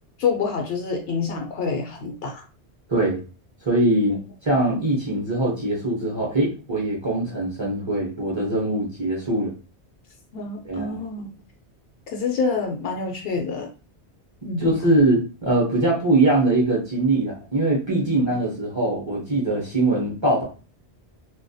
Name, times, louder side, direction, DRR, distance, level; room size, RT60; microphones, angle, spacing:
voice 1, 0.2-2.4 10.3-11.3 12.1-13.7 14.4-14.7 18.0-18.1, left 5 dB, 70° left, 2 dB, 0.7 m, -27 dB
voice 2, 3.6-9.5 10.6-11.0 14.6-20.4, right 2 dB, 30° right, -4 dB, 0.6 m, -22 dB
2.2 x 2.1 x 2.6 m, 0.34 s
omnidirectional pair, 1.1 m